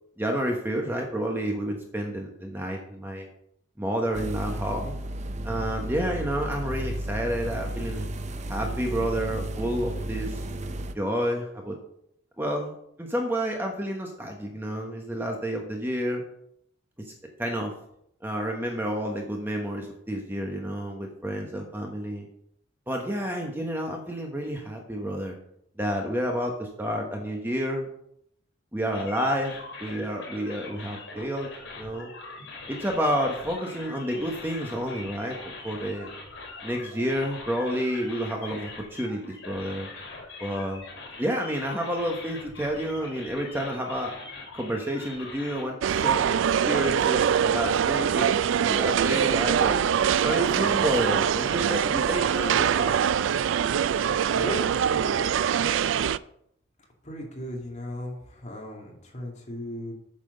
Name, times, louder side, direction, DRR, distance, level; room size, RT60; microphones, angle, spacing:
voice 1, 0.2-3.3 3.8-5.0 5.4-8.1 8.5-10.4 10.9-11.8 12.4-12.7 13.0-16.2 17.0-17.1 17.4-17.7 18.2-22.3 22.9-25.3 25.8-27.9 28.7-32.1 32.7-35.4 35.6-36.1 36.6-39.9 40.4-40.8 41.2-44.1 44.5-49.8 50.2-52.9, equal, 10° right, 1 dB, 1.1 m, -30 dB
sound 1, 4.1-10.9, right 1 dB, 35° right, 0.6 m, -33 dB
sound 2, 28.9-45.6, left 3 dB, 70° left, 3.5 m, -42 dB
sound 3, 45.8-56.2, right 8 dB, 70° right, 0.3 m, -23 dB
voice 2, 54.3-55.9 57.0-59.9, equal, 35° left, -1 dB, 2.3 m, -36 dB
8.7 x 6.0 x 6.7 m, 0.72 s
head